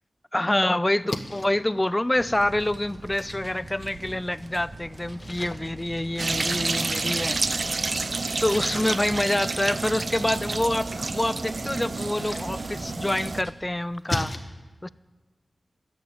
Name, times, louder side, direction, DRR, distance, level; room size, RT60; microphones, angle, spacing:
voice 1, 0.3-7.4 8.4-14.3 14.8-14.9, left 1 dB, 20° left, 18 dB, 0.4 m, -26 dB
Splash splatter, 0.8-14.4, left 2 dB, 45° left, 1.1 m, -41 dB
sound 1, 2.1-13.5, right 1 dB, 35° right, 1.5 m, -42 dB
sound 2, 6.2-13.4, right 3 dB, 60° right, 0.4 m, -29 dB
14.0 x 7.0 x 9.2 m, 1.3 s
cardioid pair, 45°, 0 cm